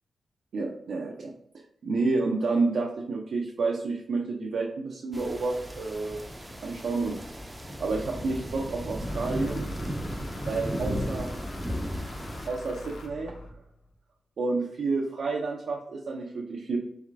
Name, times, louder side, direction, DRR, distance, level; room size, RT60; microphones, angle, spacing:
voice 1, 0.5-1.3 1.8-6.2 6.6-7.2 7.8-9.7 10.5-11.3 12.5-13.3 14.4-16.8, right 3 dB, 70° right, 0 dB, 0.5 m, -29 dB
sound 1, 5.1-12.5, equal, 10° right, 0.4 m, -35 dB
sound 2, 9.0-13.9, left 2 dB, 80° left, 0.8 m, -43 dB
3.6 x 3.2 x 3.2 m, 0.75 s
wide cardioid pair, 165°, 0 cm